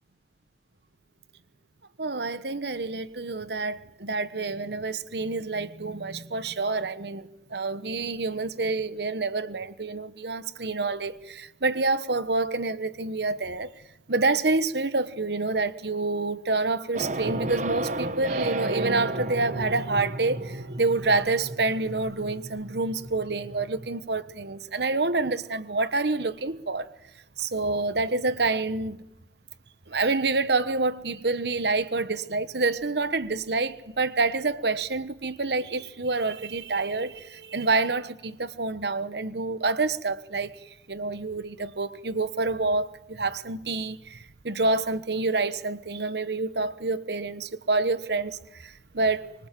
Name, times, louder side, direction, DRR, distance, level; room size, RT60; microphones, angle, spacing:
voice 1, 2.0-13.7 14.1-26.9 27.4-29.0 29.9-40.5 40.9-44.2 44.4-49.3, right 3 dB, 70° right, 1.3 m, -27 dB
sound 1, 16.9-23.9, right 1 dB, 45° right, 1.2 m, -33 dB
25.0 x 24.5 x 7.7 m
head